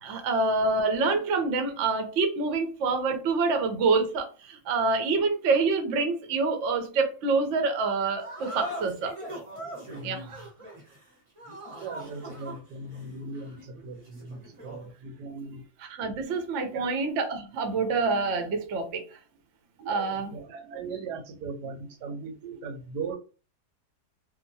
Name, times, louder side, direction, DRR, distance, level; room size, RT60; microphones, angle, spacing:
voice 1, 0.0-9.1 10.0-10.4 15.9-19.0 19.9-20.4, right 3 dB, 60° right, 5 dB, 0.8 m, -26 dB
sound 1, 8.2-14.9, right 1 dB, 30° right, 0.6 m, -41 dB
voice 2, 9.9-10.3 11.8-15.6 16.5-16.9 19.8-23.2, right 4 dB, 85° right, 5 dB, 1.2 m, -38 dB
2.8 x 2.2 x 2.6 m, 0.35 s
omnidirectional pair, 1.8 m